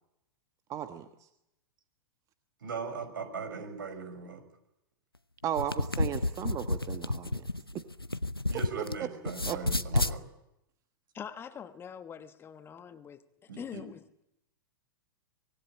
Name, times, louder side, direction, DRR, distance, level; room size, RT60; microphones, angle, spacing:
voice 1, 0.7-1.3 5.4-7.5 7.7-7.8 9.0-9.6 9.9-10.0, right 10 dB, 25° right, 1.3 m, -36 dB
voice 2, 2.6-4.4 8.5-10.2 13.5-13.8, right 5 dB, 65° right, 5.8 m, -39 dB
sound 1, 5.4-8.9 9.2-10.2, left 2 dB, 90° left, 0.8 m, -30 dB
voice 3, 11.1-14.0, left 8 dB, 20° left, 1.2 m, -44 dB
25.0 x 20.5 x 8.8 m
figure-of-eight pair, 100°, 12 cm